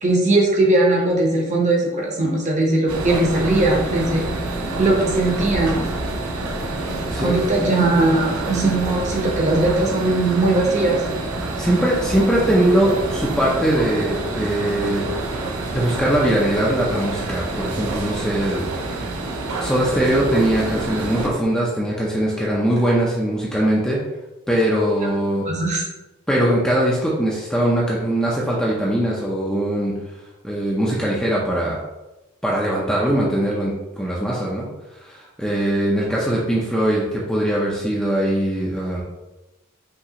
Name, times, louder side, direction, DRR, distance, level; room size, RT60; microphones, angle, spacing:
voice 1, 0.0-4.3 4.8-5.8 7.2-11.0 25.5-25.8, right 2 dB, 30° right, -1 dB, 0.8 m, -19 dB
sound 1, 2.9-21.3, right 2 dB, 85° right, 0.6 m, -27 dB
voice 2, 7.1-7.4 7.9-8.0 11.6-15.1 15.7-19.0 19.6-24.0 24.5-25.5 26.3-29.9 30.4-31.8 32.4-34.7 34.9-39.0, right 1 dB, 5° left, -5 dB, 0.5 m, -21 dB
5.6 x 2.9 x 2.9 m, 1.0 s
head